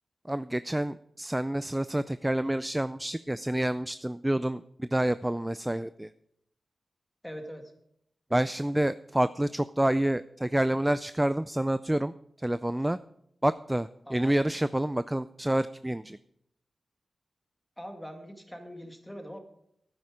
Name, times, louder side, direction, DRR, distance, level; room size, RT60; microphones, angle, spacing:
voice 1, 0.3-6.1 8.3-12.1 12.4-13.0 13.4-16.2, right 1 dB, 10° right, 15 dB, 0.3 m, -28 dB
voice 2, 7.2-7.7 14.1-14.4 17.8-19.4, equal, 5° left, 4 dB, 2.0 m, -42 dB
11.5 x 9.5 x 5.0 m, 0.73 s
wide cardioid pair, 80°, 0 cm